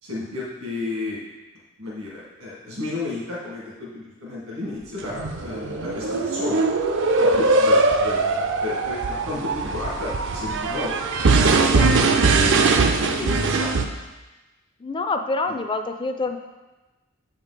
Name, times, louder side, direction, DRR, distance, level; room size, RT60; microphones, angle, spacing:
voice 1, 0.0-1.2 1.8-6.6 7.2-8.3 8.6-10.9 11.4-11.9 12.3-13.7, left 2 dB, 75° right, -5 dB, 1.9 m, -32 dB
sound 1, 5.1-13.9, right 3 dB, 60° right, 0.5 m, -21 dB
voice 2, 14.8-16.4, left 3 dB, 25° left, 6 dB, 0.4 m, -27 dB
7.8 x 5.2 x 4.1 m, 1.1 s
head